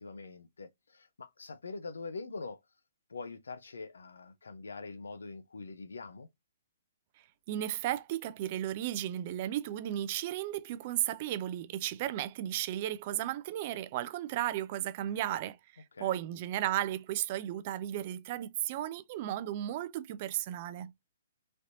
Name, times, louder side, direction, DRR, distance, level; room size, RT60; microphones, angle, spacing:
voice 1, 0.0-2.6 3.1-6.3 15.9-16.2, left 4 dB, 90° left, 0.6 m, -44 dB
voice 2, 7.5-20.9, right 12 dB, 40° right, 0.4 m, -34 dB
3.2 x 2.7 x 2.5 m
hypercardioid pair, 145°, 0 cm